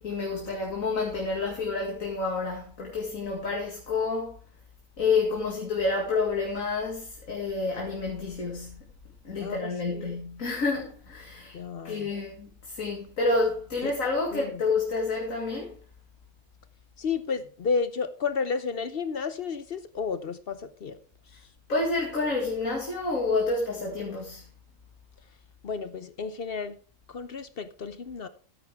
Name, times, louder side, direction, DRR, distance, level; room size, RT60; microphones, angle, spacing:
voice 1, 0.0-4.4 5.0-8.8 9.2-11.6 11.8-15.8 21.7-24.5, left 3 dB, 85° left, 2.5 m, -29 dB
voice 2, 9.4-10.2 11.5-12.1 13.8-13.9 14.3-14.6 17.0-21.0 21.3-21.4 25.6-26.8 27.1-28.3, left 5 dB, 50° left, 0.9 m, -32 dB
13.5 x 9.9 x 3.5 m
omnidirectional pair, 1.4 m